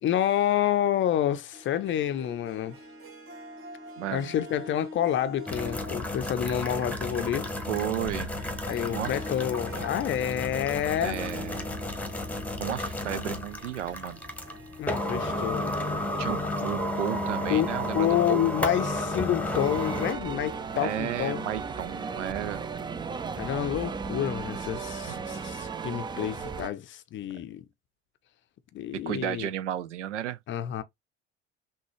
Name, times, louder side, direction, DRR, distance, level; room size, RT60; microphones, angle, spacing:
voice 1, 0.0-2.8 4.1-7.5 8.7-11.2 14.8-15.7 17.5-21.5 23.4-27.6 28.7-29.5 30.5-30.8, left 11 dB, 30° left, 0.6 m, -28 dB
Harp, 1.5-18.3, equal, 35° right, 1.3 m, -46 dB
voice 2, 4.0-4.3 7.7-8.3 8.9-9.2 11.0-11.8 12.6-14.2 16.2-18.5 20.7-22.7 25.1-25.2 29.1-30.4, right 11 dB, 75° right, 0.5 m, -33 dB
sound 1, 5.5-20.1, left 1 dB, 5° left, 1.0 m, -32 dB
sound 2, 19.5-26.7, right 5 dB, 15° right, 0.4 m, -35 dB
6.0 x 2.3 x 3.0 m
figure-of-eight pair, 60°, 37 cm